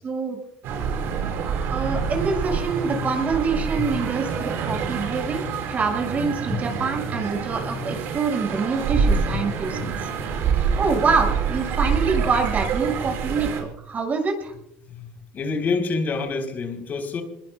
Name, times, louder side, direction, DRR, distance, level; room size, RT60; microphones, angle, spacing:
voice 1, 0.0-0.4 1.7-9.9 10.8-14.5, right 4 dB, 40° right, 2 dB, 6.3 m, -25 dB
sound 1, 0.6-13.6, right 6 dB, 70° right, 6.0 m, -26 dB
voice 2, 9.3-9.9 14.9-17.2, left 4 dB, 50° left, 5 dB, 4.0 m, -28 dB
27.0 x 21.5 x 2.4 m, 0.75 s
supercardioid pair, 95°, 4 cm